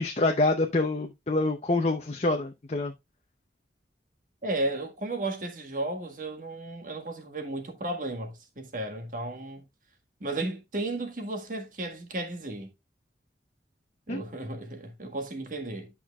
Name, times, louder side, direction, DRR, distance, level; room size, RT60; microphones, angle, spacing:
voice 1, 0.0-2.9 14.1-14.2, left 2 dB, 35° left, 0.7 m, -26 dB
voice 2, 4.4-9.6 10.2-12.7 14.1-15.9, right 2 dB, 45° right, 1.6 m, -34 dB
10.5 x 5.9 x 2.4 m
head